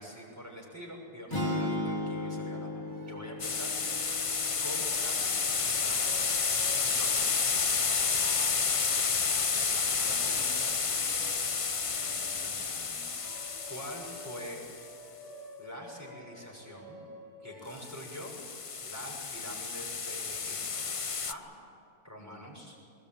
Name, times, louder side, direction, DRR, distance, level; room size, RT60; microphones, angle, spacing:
voice 1, 0.0-4.3 4.6-6.4 6.8-7.5 9.7-11.6 11.9-13.1 13.7-14.6 15.6-17.0 17.4-18.3 18.8-20.9 21.3-21.5 22.0-22.8, equal, 10° right, -2 dB, 6.3 m, -46 dB
sound 1, 1.3-5.5, left 1 dB, 15° left, 3.6 m, -36 dB
sound 2, 2.8-18.2, equal, 45° right, 5.2 m, -51 dB
sound 3, 3.4-14.9 17.8-21.3, left 5 dB, 55° left, 0.3 m, -30 dB
22.5 x 21.0 x 9.0 m, 2.7 s
omnidirectional pair, 1.7 m